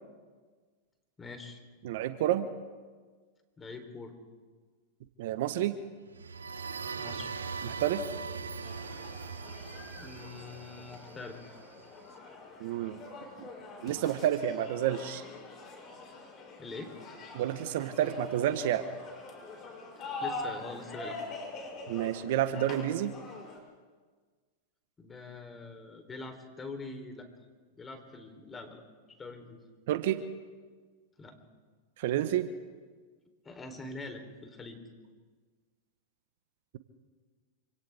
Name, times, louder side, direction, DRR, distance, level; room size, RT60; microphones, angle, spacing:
voice 1, 1.2-1.6 3.6-4.2 7.0-7.3 10.0-11.6 16.6-17.0 20.0-21.2 25.0-27.3 27.8-28.8 29.1-29.6 31.2-31.4 33.4-34.8, left 3 dB, 20° left, 5 dB, 3.6 m, -44 dB
voice 2, 1.8-2.5 5.2-5.8 7.6-8.1 12.6-13.0 13.4-13.5 13.8-15.2 17.3-18.9 21.9-23.1 29.9-30.2 32.0-32.5, right 11 dB, 60° right, 11 dB, 1.2 m, -29 dB
sound 1, 6.1-11.8, right 5 dB, 85° right, 1.3 m, -40 dB
sound 2, 8.6-23.6, left 3 dB, 35° left, 7.1 m, -44 dB
28.0 x 26.5 x 3.6 m, 1.5 s
hypercardioid pair, 100°, 0 cm